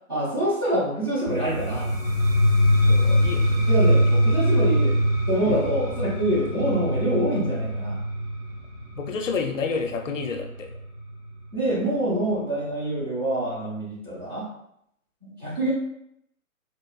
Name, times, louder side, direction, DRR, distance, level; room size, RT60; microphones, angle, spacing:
voice 1, 0.1-2.0 3.7-5.0 5.3-8.0 11.5-14.5 15.2-15.7, right 1 dB, 20° right, -7 dB, 0.6 m, -26 dB
sound 1, 1.3-11.0, equal, 40° right, 1.0 m, -23 dB
voice 2, 2.8-4.0 5.4-5.6 9.0-10.7, left 5 dB, 60° left, 4 dB, 0.6 m, -30 dB
4.1 x 2.4 x 2.4 m, 0.75 s
hypercardioid pair, 145°, 42 cm